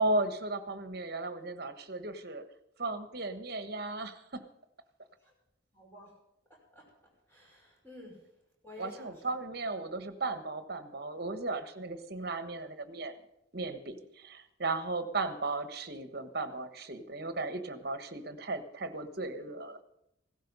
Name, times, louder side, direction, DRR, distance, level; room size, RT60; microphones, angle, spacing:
voice 1, 0.0-2.4 2.8-4.5 8.8-13.1 13.5-19.8, right 2 dB, 50° right, 10 dB, 1.3 m, -35 dB
voice 2, 5.7-6.1 6.5-6.9 7.3-8.3 8.6-9.1, left 2 dB, 10° left, -3 dB, 5.4 m, -51 dB
16.0 x 13.0 x 5.4 m, 0.82 s
head